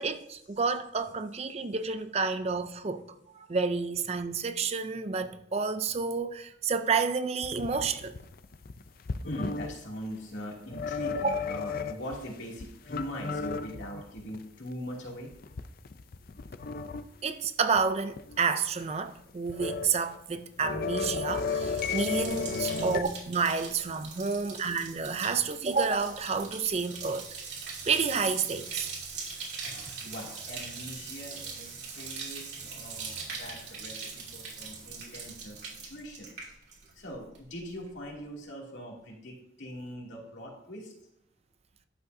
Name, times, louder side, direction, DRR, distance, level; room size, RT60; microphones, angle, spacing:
voice 1, 0.0-3.0 3.3-8.2 11.2-11.4 17.2-27.2 27.8-28.9, right 5 dB, 30° right, 0.4 m, -30 dB
sound 1, 7.4-9.8 10.7-12.2 12.6-14.4 14.7-14.8 15.3-17.0 17.4-17.5 17.8-17.9 18.1-18.4 19.3-19.9 20.1-23.0, left 5 dB, 50° left, 0.4 m, -34 dB
voice 2, 9.2-15.3 29.6-36.3 36.9-40.9, equal, 70° left, 2.6 m, -42 dB
Bathtub (filling or washing), 21.1-37.1 37.3-37.9, right 5 dB, 60° right, 2.7 m, -42 dB
12.0 x 8.0 x 2.7 m
head